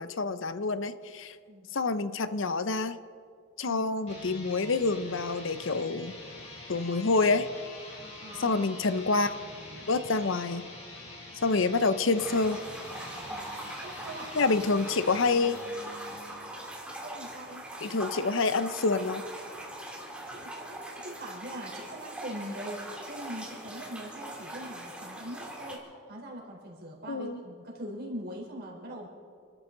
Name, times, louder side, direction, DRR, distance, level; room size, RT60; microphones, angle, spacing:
voice 1, 0.0-1.4 1.7-3.0 3.6-6.1 6.7-7.5 8.4-9.4 9.9-10.7 11.4-12.6 14.3-15.6 17.8-19.2 27.1-27.4, left 3 dB, 65° left, 12 dB, 0.7 m, -27 dB
sound 1, 4.0-16.7, left 2 dB, 30° left, 4.7 m, -45 dB
voice 2, 8.2-8.6 13.3-14.4 17.0-17.6 20.3-29.1, equal, 45° right, -2 dB, 4.0 m, -42 dB
sound 2, 12.2-25.8, right 1 dB, 5° right, 2.3 m, -42 dB
28.5 x 13.0 x 3.9 m, 2.3 s
head